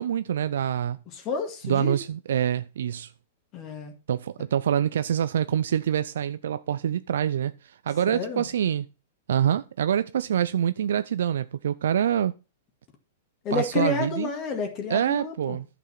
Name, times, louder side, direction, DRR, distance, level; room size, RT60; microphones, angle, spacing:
voice 1, 0.0-1.0 1.6-3.1 4.1-8.9 9.3-12.3 13.5-14.3 14.9-15.7, right 9 dB, 75° right, 0.4 m, -26 dB
voice 2, 1.1-2.0 3.5-3.9 8.1-8.5 13.4-15.6, left 4 dB, 40° left, 2.3 m, -30 dB
11.0 x 6.0 x 5.8 m
hypercardioid pair, 110°, 0 cm